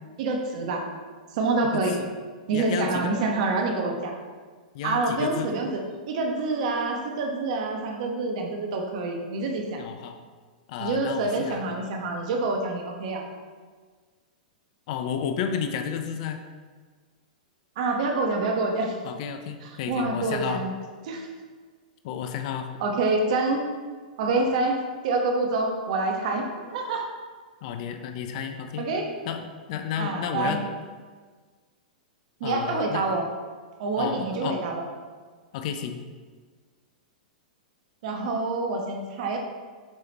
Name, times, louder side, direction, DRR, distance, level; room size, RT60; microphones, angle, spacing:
voice 1, 0.2-0.8 1.3-1.9 2.5-4.1 4.8-5.8 6.1-9.8 10.8-13.2 17.8-19.0 19.6-20.7 21.1-21.2 22.8-23.6 24.2-27.0 28.8-29.1 30.0-30.6 32.4-33.2 33.8-34.8 38.0-39.4, right 3 dB, 60° right, 2 dB, 1.2 m, -27 dB
voice 2, 1.7-2.1 2.5-3.1 4.7-5.5 9.8-10.2 10.7-11.7 14.9-16.4 19.0-20.6 22.0-22.7 27.6-28.9 29.2-30.6 32.4-33.0 34.0-34.6 35.5-36.0, left 8 dB, 55° left, 7 dB, 0.6 m, -32 dB
7.5 x 5.1 x 3.0 m, 1.5 s
hypercardioid pair, 120°, 4 cm